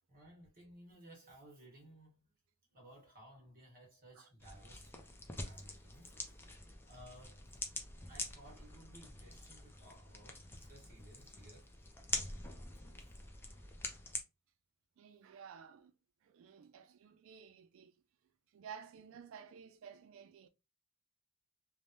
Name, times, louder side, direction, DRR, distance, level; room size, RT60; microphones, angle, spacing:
voice 1, 0.1-2.2 2.7-4.9 5.4-6.2 6.9-7.4 7.9-11.7 13.0-13.2, right 1 dB, 40° right, 1.2 m, -58 dB
sound 1, 4.4-14.2, left 2 dB, 10° left, 0.4 m, -45 dB
voice 2, 15.0-15.9 16.2-17.9 18.5-20.5, right 7 dB, 60° right, 0.3 m, -54 dB
3.2 x 2.1 x 2.7 m
head